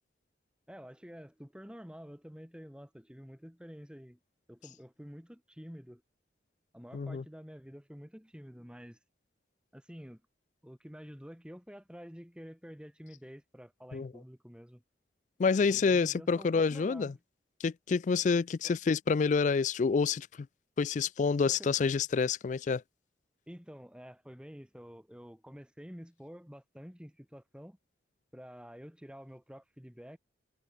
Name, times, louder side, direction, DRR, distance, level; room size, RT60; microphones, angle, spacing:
voice 1, 0.7-4.2 4.5-6.0 6.7-9.0 9.7-10.2 10.6-14.8 15.6-17.2 18.6-18.7 21.5-21.7 23.5-27.8 28.3-30.2, equal, 5° right, 2.4 m, -49 dB
voice 2, 6.9-7.2 13.9-14.1 15.4-17.1 17.6-20.5 20.8-22.8, left 5 dB, 40° left, 0.3 m, -28 dB
head